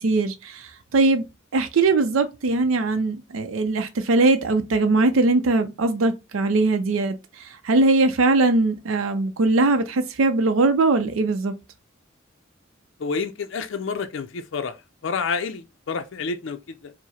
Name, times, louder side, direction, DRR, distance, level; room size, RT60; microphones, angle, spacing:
voice 1, 0.0-1.2 1.5-11.5, right 3 dB, 85° right, 0.5 m, -21 dB
voice 2, 13.0-14.8 15.0-16.9, left 5 dB, 65° left, 0.4 m, -29 dB
4.6 x 2.0 x 4.2 m
head